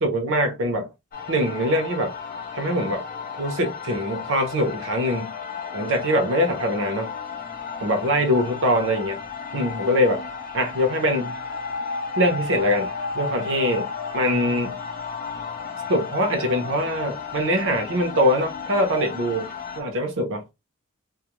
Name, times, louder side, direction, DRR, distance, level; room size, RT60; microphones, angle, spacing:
voice 1, 0.0-0.9 1.3-2.2 2.5-3.1 3.4-5.3 5.7-7.1 7.8-9.2 9.5-10.2 10.5-11.4 12.2-14.8 15.9-20.4, equal, 60° right, 0.8 m, -23 dB
sound 1, 1.1-19.8, left 5 dB, 40° left, 0.5 m, -33 dB
2.3 x 2.2 x 2.9 m
head